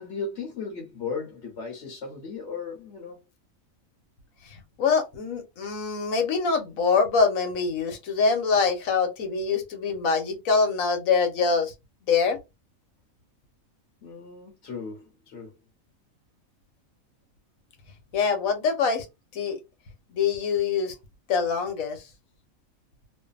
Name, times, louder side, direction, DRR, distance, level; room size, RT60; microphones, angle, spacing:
voice 1, 0.0-3.2 14.0-15.6, left 4 dB, 60° left, 1.0 m, -36 dB
voice 2, 4.4-11.7 12.1-12.4 18.1-19.1 19.3-19.6 20.1-20.9 21.3-22.1, left 5 dB, 75° left, 1.2 m, -24 dB
2.6 x 2.5 x 2.3 m
omnidirectional pair, 1.4 m